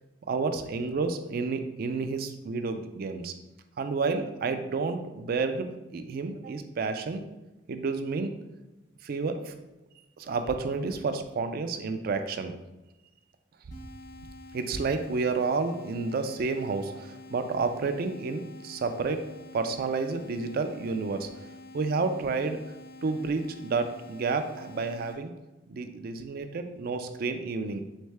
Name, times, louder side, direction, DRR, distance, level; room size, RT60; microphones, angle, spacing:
voice 1, 0.3-3.3 3.8-7.3 7.7-8.3 9.0-9.5 10.2-12.5 14.5-19.2 19.5-21.3 21.7-22.6 23.0-25.3 25.7-27.8, right 4 dB, 50° right, 8 dB, 0.3 m, -30 dB
sound 1, 13.7-25.1, left 2 dB, 75° left, 1.3 m, -48 dB
3.5 x 3.3 x 3.2 m, 1.0 s
head